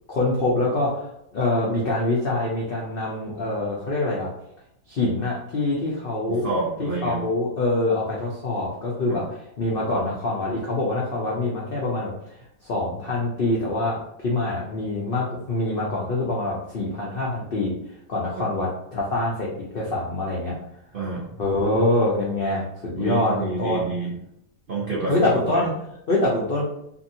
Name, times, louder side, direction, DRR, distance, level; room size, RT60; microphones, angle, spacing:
voice 1, 0.1-4.3 4.9-6.5 6.8-9.2 9.6-12.1 12.6-17.7 18.1-20.5 21.4-23.8 25.1-25.7 26.1-26.7, left 2 dB, 80° left, -5 dB, 0.5 m, -25 dB
voice 2, 6.3-7.2 9.1-9.2 18.4-18.5 20.9-21.4 23.0-24.1 24.7-25.7, right 3 dB, 80° right, -5 dB, 0.4 m, -29 dB
2.7 x 2.7 x 2.6 m, 0.76 s
omnidirectional pair, 1.8 m